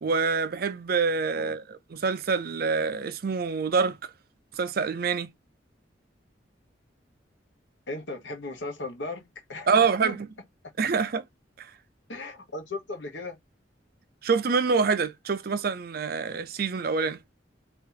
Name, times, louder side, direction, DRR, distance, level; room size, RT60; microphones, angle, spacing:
voice 1, 0.0-4.1 4.5-5.3 9.7-10.3 10.8-11.2 11.6-11.7 14.2-17.2, right 5 dB, 55° right, 0.5 m, -26 dB
voice 2, 7.9-10.2 12.1-13.4, left 2 dB, 85° left, 1.3 m, -37 dB
2.9 x 2.9 x 3.9 m
head